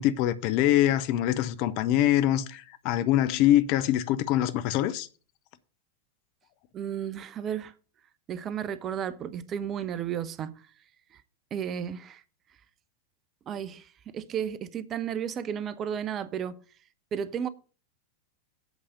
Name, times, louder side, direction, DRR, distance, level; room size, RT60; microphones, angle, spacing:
voice 1, 0.0-5.1, left 13 dB, 45° left, 0.6 m, -24 dB
voice 2, 6.7-7.7 8.3-10.6 11.1-11.2 11.5-12.2 13.5-16.6 17.1-17.5, right 8 dB, 30° right, 0.6 m, -33 dB
8.2 x 4.8 x 6.6 m
figure-of-eight pair, 90°, 0 cm